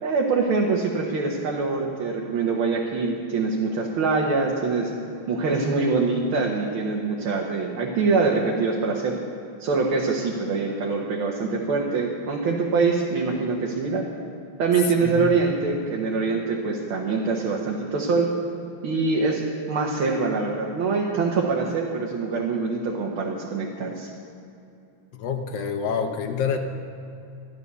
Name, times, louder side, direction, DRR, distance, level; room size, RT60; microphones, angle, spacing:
voice 1, 0.0-4.9 5.3-9.2 9.6-14.0 14.6-18.3 18.8-24.1, right 4 dB, 75° right, -2 dB, 2.0 m, -24 dB
voice 2, 25.1-26.6, left 6 dB, 60° left, 6 dB, 1.6 m, -27 dB
14.0 x 11.0 x 6.8 m, 2.6 s
omnidirectional pair, 2.3 m